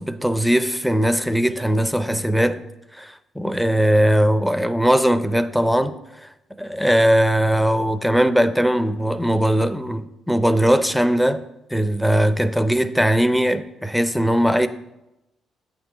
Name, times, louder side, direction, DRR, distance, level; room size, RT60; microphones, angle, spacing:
voice 1, 0.0-2.6 2.9-5.9 6.6-11.4 11.7-14.7, equal, ahead, 0.4 m, -19 dB
8.5 x 3.8 x 6.0 m
cardioid pair, 90°, 0 cm